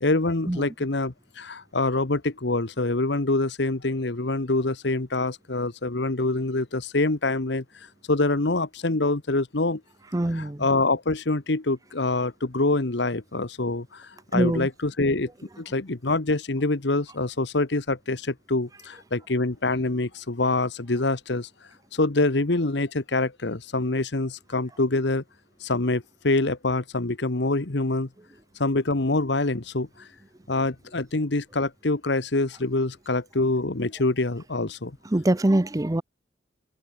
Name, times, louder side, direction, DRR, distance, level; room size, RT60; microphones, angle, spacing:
voice 1, 0.0-7.6 8.1-9.8 10.3-15.3 15.6-21.5 21.9-25.2 25.6-28.1 28.6-30.1 30.5-35.0, left 2 dB, 60° left, 1.2 m, -25 dB
voice 2, 10.1-10.7 14.3-14.7 35.1-36.0, right 1 dB, 15° right, 0.6 m, -23 dB
open air
head